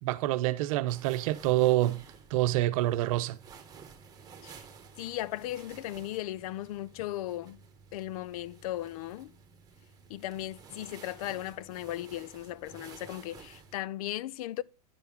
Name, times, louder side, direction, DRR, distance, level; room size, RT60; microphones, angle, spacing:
voice 1, 0.0-2.0 2.3-3.4, right 15 dB, 60° right, 0.8 m, -27 dB
sound 1, 0.9-13.8, right 6 dB, 20° right, 1.6 m, -53 dB
voice 2, 5.0-7.6 7.9-9.3 10.1-14.6, left 14 dB, 65° left, 0.4 m, -37 dB
10.5 x 4.7 x 5.2 m
supercardioid pair, 130°, 20 cm